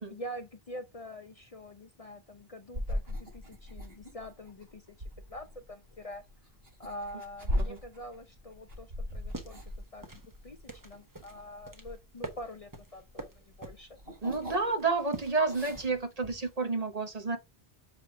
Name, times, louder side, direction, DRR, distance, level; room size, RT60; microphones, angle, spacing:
voice 1, 0.1-5.0 5.3-6.2 6.8-9.6 9.9-10.1 10.4-13.9, equal, 40° left, 0.7 m, -45 dB
sound 1, 2.7-13.1 13.4-15.0 15.2-16.0, left 1 dB, 65° right, 5.2 m, -38 dB
sound 2, 9.1-16.6, right 2 dB, 20° right, 1.2 m, -47 dB
voice 2, 14.2-17.4, right 3 dB, 40° right, 1.2 m, -30 dB
7.6 x 3.6 x 4.7 m
omnidirectional pair, 1.0 m